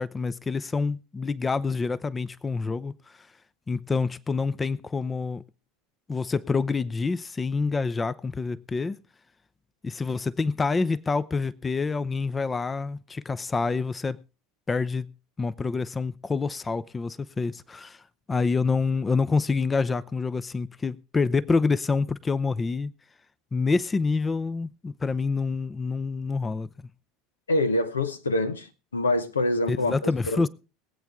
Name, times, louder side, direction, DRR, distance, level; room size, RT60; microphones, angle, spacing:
voice 1, 0.0-3.2 3.7-5.4 6.1-9.0 9.8-14.2 14.7-15.1 15.4-18.0 18.3-22.9 23.5-26.7 29.7-30.5, left 4 dB, 20° left, 0.6 m, -27 dB
voice 2, 27.5-28.7 28.9-30.0 30.3-30.4, left 2 dB, 90° left, 0.9 m, -25 dB
22.0 x 8.2 x 3.6 m
hypercardioid pair, 75°, 0 cm